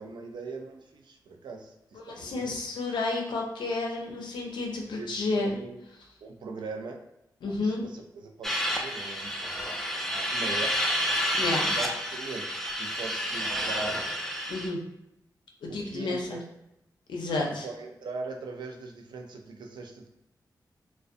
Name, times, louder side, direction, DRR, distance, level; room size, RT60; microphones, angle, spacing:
voice 1, 0.0-2.5 5.0-5.9 6.2-7.0 7.5-10.7 11.7-14.1 15.7-16.4 17.5-20.1, right 3 dB, 80° right, 3 dB, 0.4 m, -41 dB
voice 2, 2.0-5.6 7.4-7.8 11.3-11.7 14.5-14.8 15.6-16.4 17.1-17.7, left 2 dB, 90° left, 0 dB, 0.5 m, -31 dB
sound 1, 8.4-14.7, equal, 5° left, 0.4 m, -30 dB
2.5 x 2.1 x 2.5 m, 0.83 s
cardioid pair, 70°, 8 cm